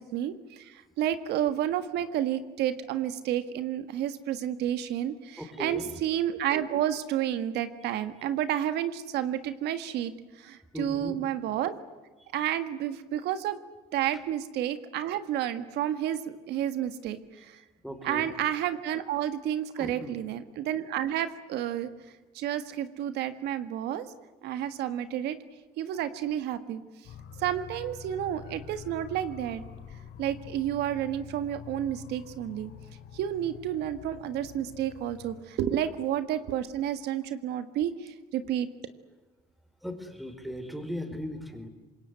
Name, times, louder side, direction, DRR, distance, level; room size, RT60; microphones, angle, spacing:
voice 1, 0.0-11.7 12.3-13.6 13.9-17.6 18.0-21.9 22.3-24.1 24.4-25.4 25.8-26.8 27.4-29.6 30.2-32.7 33.1-38.7, right 11 dB, 80° right, 11 dB, 1.7 m, -30 dB
voice 2, 5.4-5.9 10.7-11.2 12.2-12.3 17.8-18.3 19.8-20.2 39.8-41.7, left 1 dB, ahead, 8 dB, 4.4 m, -37 dB
sound 1, 27.0-35.4, left 7 dB, 85° left, 3.8 m, -46 dB
26.0 x 21.5 x 9.5 m, 1.3 s
cardioid pair, 110°, 17 cm